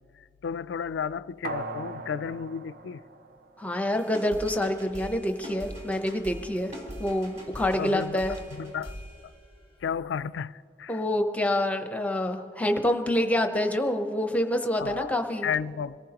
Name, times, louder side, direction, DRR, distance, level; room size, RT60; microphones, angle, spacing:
voice 1, 0.4-3.0 7.8-8.9 9.8-11.0 14.8-16.0, left 7 dB, 90° left, 0.3 m, -33 dB
sound 1, 1.4-4.0 4.4-4.5, right 2 dB, 55° right, 0.8 m, -39 dB
voice 2, 3.6-6.7 7.0-8.4 10.9-15.5, left 1 dB, 10° left, 0.8 m, -27 dB
sound 2, 3.9-9.8, equal, 40° right, 3.8 m, -43 dB
26.0 x 18.5 x 2.9 m
head